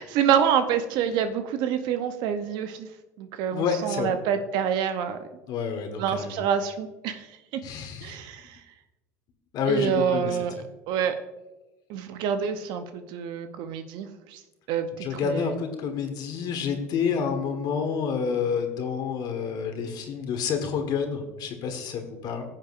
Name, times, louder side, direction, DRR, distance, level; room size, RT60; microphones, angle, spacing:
voice 1, 0.0-2.9 3.2-5.3 6.0-7.3 8.0-8.6 9.7-11.1 11.9-14.4 14.7-15.6, right 8 dB, 65° right, 9 dB, 0.7 m, -27 dB
voice 2, 3.5-4.1 5.5-6.3 7.6-8.1 9.5-10.4 15.0-22.4, left 6 dB, 55° left, 6 dB, 1.4 m, -29 dB
15.0 x 7.5 x 2.5 m, 1.1 s
hypercardioid pair, 80°, 8 cm